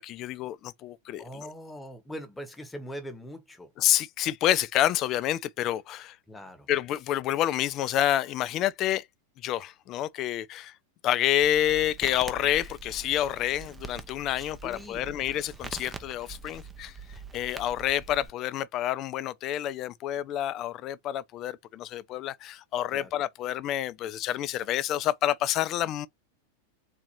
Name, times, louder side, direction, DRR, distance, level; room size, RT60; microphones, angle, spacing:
voice 1, 0.0-1.5 3.8-6.2 6.7-9.1 9.4-10.7 11.0-26.1, left 12 dB, 35° left, 0.4 m, -28 dB
voice 2, 1.2-3.7 6.3-6.7 14.6-15.2 22.9-23.1, equal, 10° left, 1.1 m, -41 dB
Crackle, 11.4-18.3, right 4 dB, 10° right, 0.6 m, -44 dB
4.0 x 2.8 x 3.0 m
figure-of-eight pair, 90°, 0 cm